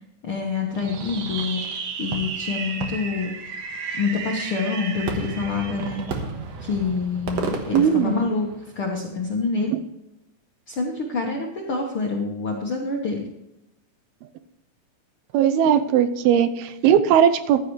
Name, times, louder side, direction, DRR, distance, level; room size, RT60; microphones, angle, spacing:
voice 1, 0.2-1.6 2.0-3.3 3.9-6.0 6.6-8.5 8.7-9.7 10.7-13.3, left 4 dB, 70° left, 0 dB, 1.2 m, -26 dB
Fireworks, 0.8-8.9, right 5 dB, 60° right, 1.9 m, -32 dB
voice 2, 7.7-8.1 9.7-9.8 15.3-17.6, right 9 dB, 85° right, 11 dB, 2.6 m, -18 dB
15.0 x 12.0 x 3.2 m, 0.91 s
omnidirectional pair, 4.4 m